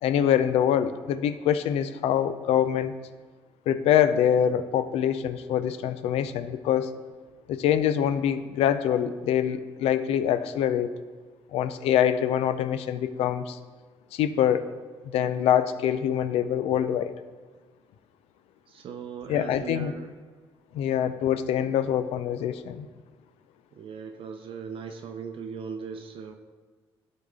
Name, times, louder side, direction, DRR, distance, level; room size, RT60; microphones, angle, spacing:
voice 1, 0.0-3.0 3.7-6.9 7.5-10.9 11.5-13.6 14.1-14.7 15.0-17.1 19.3-19.9 20.7-22.9, left 9 dB, 85° left, 12 dB, 0.4 m, -24 dB
voice 2, 18.7-20.1 23.7-26.4, right 6 dB, 65° right, 4 dB, 0.6 m, -38 dB
11.5 x 4.0 x 3.7 m, 1.4 s
cardioid pair, 75°, 10 cm